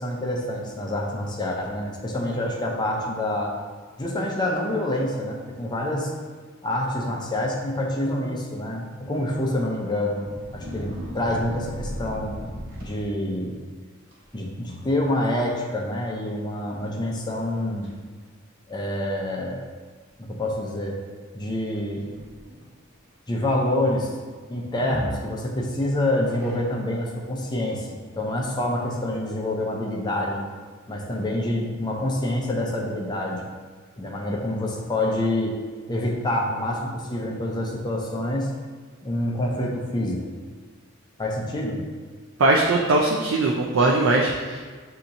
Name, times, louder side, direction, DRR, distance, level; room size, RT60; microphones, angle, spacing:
voice 1, 0.0-3.5 4.0-6.1 6.6-10.2 10.5-12.4 12.8-13.5 14.3-17.9 18.7-19.6 20.2-21.0 21.3-22.0 23.3-24.1 24.5-30.4 30.9-33.5 34.0-35.6 35.9-38.5 39.0-40.3 41.2-41.8, left 1 dB, 20° left, -1 dB, 0.6 m, -27 dB
sound 1, 10.2-13.5 14.1-14.4 14.7-15.1 15.4-15.5 16.2-16.3 16.9-17.0 17.5-17.9 18.7-18.8 21.7-22.7 24.7-25.8 26.3-27.0, equal, 50° right, 1.3 m, -37 dB
voice 2, 42.4-44.7, right 2 dB, 75° right, -1 dB, 0.4 m, -20 dB
6.9 x 2.8 x 2.6 m, 1.5 s
head